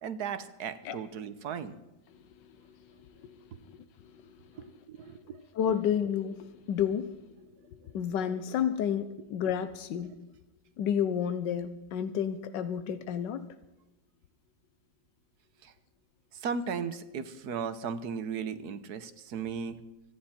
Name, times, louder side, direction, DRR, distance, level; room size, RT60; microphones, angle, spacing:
voice 1, 0.0-1.8 3.5-3.6 4.6-5.4 15.6-15.7 16.3-19.8, right 6 dB, 65° right, 12 dB, 1.4 m, -36 dB
voice 2, 3.6-4.3 5.5-7.1 7.8-10.2 10.8-13.4, left 8 dB, 85° left, 11 dB, 1.4 m, -31 dB
24.5 x 9.9 x 4.3 m, 1.0 s
omnidirectional pair, 1.9 m